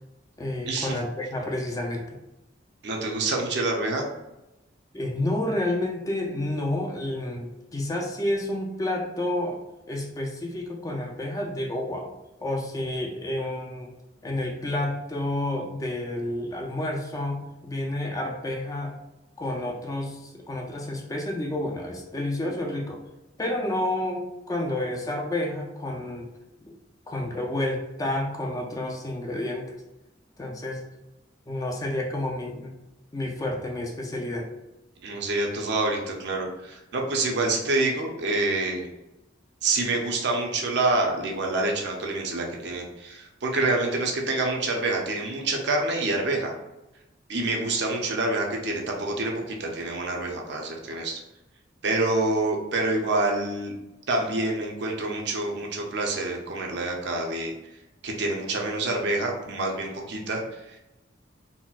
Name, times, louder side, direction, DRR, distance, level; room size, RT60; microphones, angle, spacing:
voice 1, 0.4-2.2 4.9-9.6 9.9-12.1 12.4-13.9 14.2-18.9 19.4-23.0 23.4-26.3 26.6-26.7 27.1-29.8 30.4-30.8 31.5-32.7 33.1-34.5, left 1 dB, 20° left, 1 dB, 0.4 m, -30 dB
voice 2, 2.8-4.1 35.0-38.9 39.6-46.5 47.3-51.2 51.8-53.7 54.1-57.5 58.0-60.9, right 2 dB, 65° right, 1 dB, 0.6 m, -27 dB
4.1 x 2.1 x 2.3 m, 0.97 s
head